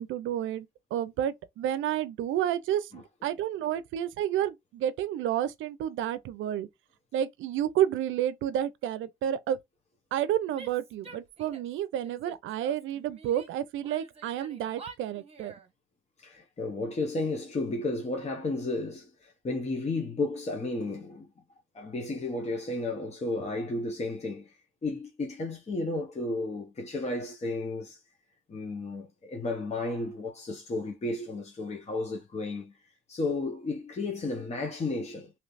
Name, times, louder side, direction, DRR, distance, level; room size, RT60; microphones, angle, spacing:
voice 1, 0.0-6.7 7.1-9.6 10.1-15.5, right 11 dB, 80° right, 0.5 m, -30 dB
Female speech woman speaking / Yell, 10.5-11.7 12.0-13.5 13.8-15.7, right 4 dB, 30° right, 1.0 m, -48 dB
voice 2, 16.2-21.3 21.7-28.0 28.5-32.8 33.1-35.3, left 2 dB, 35° left, 0.9 m, -33 dB
3.2 x 2.9 x 2.5 m
cardioid pair, 90°, 20 cm